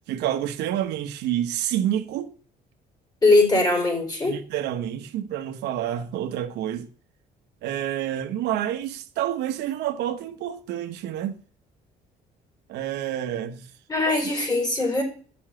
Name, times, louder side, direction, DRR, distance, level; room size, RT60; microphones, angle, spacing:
voice 1, 0.1-2.3 4.2-6.9 7.6-11.4 12.7-13.7 14.1-14.2, right 11 dB, 80° right, 1.1 m, -28 dB
voice 2, 3.2-4.4 13.9-15.0, left 2 dB, 25° left, 4.2 m, -21 dB
7.2 x 6.1 x 7.6 m
cardioid pair, 110°, 17 cm